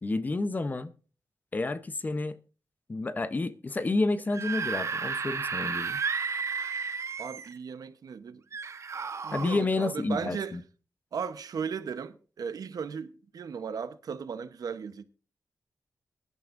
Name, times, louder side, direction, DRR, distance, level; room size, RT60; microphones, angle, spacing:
voice 1, 0.0-0.9 1.5-2.3 2.9-6.0 9.3-10.6, left 3 dB, 30° left, 0.8 m, -30 dB
Screaming / Screech, 4.2-7.6 8.5-9.6, right 5 dB, 55° right, 1.1 m, -33 dB
voice 2, 7.2-8.4 9.2-10.6 11.1-15.0, right 6 dB, 85° right, 1.0 m, -36 dB
22.0 x 11.0 x 2.6 m
wide cardioid pair, 180°, 6 cm